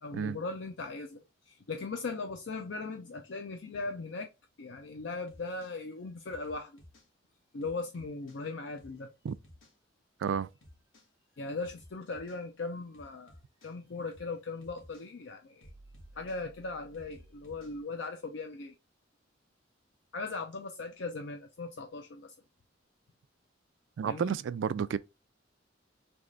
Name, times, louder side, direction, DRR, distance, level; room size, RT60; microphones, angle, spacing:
voice 1, 0.0-4.3 4.6-6.8 7.5-9.1 11.4-13.4 13.6-15.7 16.1-18.7 20.1-22.3 24.0-24.4, left 3 dB, 65° left, 0.5 m, -39 dB
sound 1, 5.3-5.7 6.3-7.1 7.6-8.4 8.8-9.0 9.3-9.7 10.3-11.1 11.6-12.4 12.9-13.7 14.1-14.3 14.6-15.1 15.6-17.8, equal, 80° left, 1.6 m, -56 dB
voice 2, 24.0-25.0, right 7 dB, 75° right, 0.3 m, -31 dB
3.5 x 3.2 x 3.7 m
head